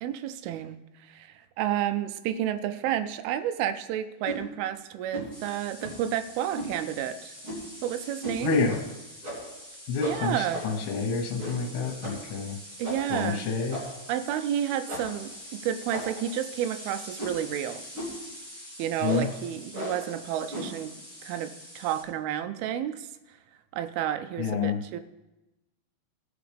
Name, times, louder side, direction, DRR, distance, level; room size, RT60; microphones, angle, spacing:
voice 1, 0.0-7.3 7.8-8.6 10.1-10.6 12.8-13.5 14.1-17.8 18.8-20.9 21.2-23.1 23.7-25.0, right 10 dB, 85° right, 10 dB, 2.5 m, -31 dB
sound 1, 4.2-4.4 5.1-5.4 5.8-6.1 6.6-6.7 7.4-7.7 8.2-8.4 8.7-8.8 9.2-9.6 10.0-10.9 11.4-11.7 12.0-12.3 12.8-13.1 13.7-14.1 14.9-15.2 15.9-16.3 17.2-17.5 17.9-18.2 19.0-19.3 19.7-20.1 20.5-20.8, equal, 35° right, 3.2 m, -36 dB
sound 2, 5.3-22.0, equal, ahead, 1.3 m, -45 dB
voice 2, 8.4-8.8 9.9-12.6 13.1-13.8 19.0-19.3 24.4-24.8, left 4 dB, 85° left, 3 dB, 3.1 m, -28 dB
17.5 x 5.9 x 3.5 m, 0.99 s
omnidirectional pair, 4.5 m